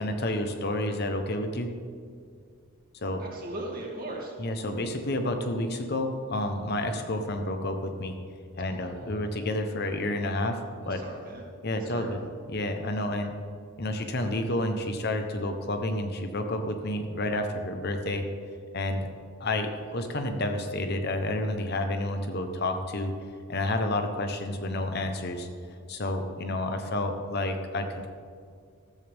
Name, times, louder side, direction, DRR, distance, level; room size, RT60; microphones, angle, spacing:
voice 1, 0.0-1.7 2.9-3.2 4.4-8.2 8.6-10.6 10.8-11.0 11.6-12.2 12.5-13.3 13.8-18.3 18.7-19.1 19.4-23.2 23.5-25.5 25.9-28.1, left 1 dB, 50° left, 6 dB, 1.0 m, -30 dB
voice 2, 3.2-4.3 8.7-9.2 10.8-12.3, right 1 dB, 40° right, -2 dB, 2.6 m, -39 dB
14.5 x 13.5 x 3.6 m, 2.2 s
head